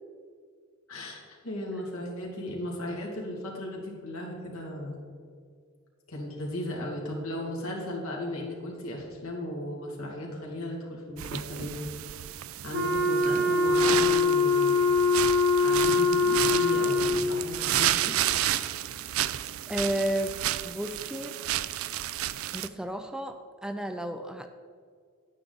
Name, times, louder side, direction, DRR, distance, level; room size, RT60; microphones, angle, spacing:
voice 1, 0.9-5.0 6.1-11.7 12.3-14.8 15.5-18.2, left 1 dB, 85° left, -2 dB, 2.5 m, -36 dB
sound 1, 11.2-22.7, right 12 dB, 80° right, 0.4 m, -31 dB
Wind instrument woodwind instrument, 12.7-17.4, left 3 dB, 50° right, 1.0 m, -23 dB
voice 2, 19.7-20.4 20.6-21.4 22.5-24.5, right 1 dB, 5° right, 7 dB, 0.4 m, -32 dB
10.0 x 9.1 x 4.0 m, 2.1 s
head